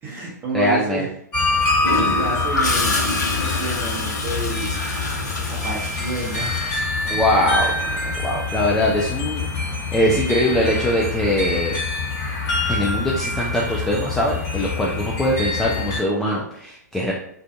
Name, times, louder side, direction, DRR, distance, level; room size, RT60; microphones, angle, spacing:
voice 1, 0.0-1.1 1.7-3.0 3.3-4.8 5.4-6.8, right 2 dB, 20° right, -3 dB, 0.8 m, -30 dB
voice 2, 0.5-1.1 7.0-11.8 12.7-17.1, equal, 5° left, -4 dB, 0.3 m, -22 dB
sound 1, 1.3-16.0, left 3 dB, 35° left, 1.5 m, -25 dB
Gurgling / Toilet flush, 1.8-7.6 9.6-9.8, left 2 dB, 70° left, 0.6 m, -27 dB
2.6 x 2.4 x 2.3 m, 0.69 s
figure-of-eight pair, 110°, 10 cm